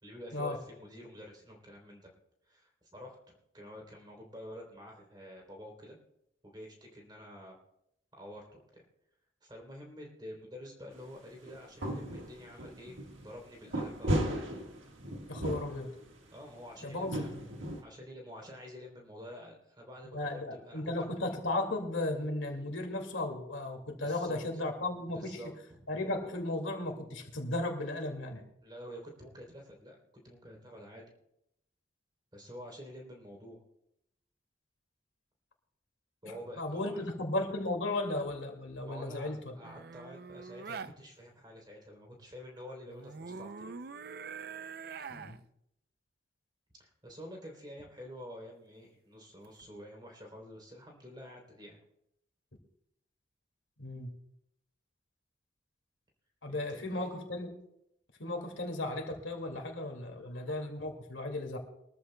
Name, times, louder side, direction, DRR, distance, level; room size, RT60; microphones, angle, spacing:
voice 1, 0.0-2.1 2.4-6.0 6.4-7.6 8.1-8.8 9.4-14.4 16.3-17.3 17.8-21.1 24.0-24.4 25.1-25.9 28.6-30.0 30.2-31.1 32.3-33.6 36.2-37.1 38.8-43.8 46.8-51.8 56.5-57.1 59.4-59.6, equal, 20° right, 0 dB, 3.2 m, -48 dB
sound 1, 10.9-11.0 11.5-13.3 13.6-16.0 16.9-17.8, right 1 dB, 85° right, 1.6 m, -35 dB
voice 2, 15.3-15.9 16.8-17.2 20.1-25.4 25.9-28.4 36.6-39.6 45.1-45.4 53.8-54.1 56.4-57.6 58.2-61.6, left 2 dB, 85° left, 3 dB, 2.2 m, -35 dB
sound 2, 39.6-40.9 42.9-45.4 49.4-49.7, right 5 dB, 50° right, 0.4 m, -44 dB
23.0 x 13.5 x 2.2 m, 0.80 s
head